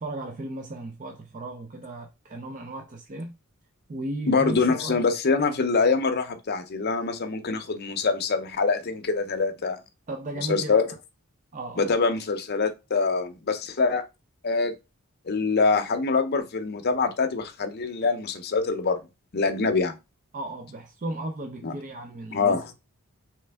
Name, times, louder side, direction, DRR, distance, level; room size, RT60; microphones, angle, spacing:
voice 1, 0.0-3.4 3.9-5.0 10.1-10.8 11.5-11.9 20.3-22.8, right 2 dB, 35° right, 0.5 m, -35 dB
voice 2, 4.3-9.8 10.5-10.9 11.8-14.0 14.4-14.7 15.3-19.0 19.3-20.0 21.6-21.7 22.3-22.7, left 4 dB, 45° left, 0.6 m, -24 dB
4.2 x 3.2 x 3.4 m
head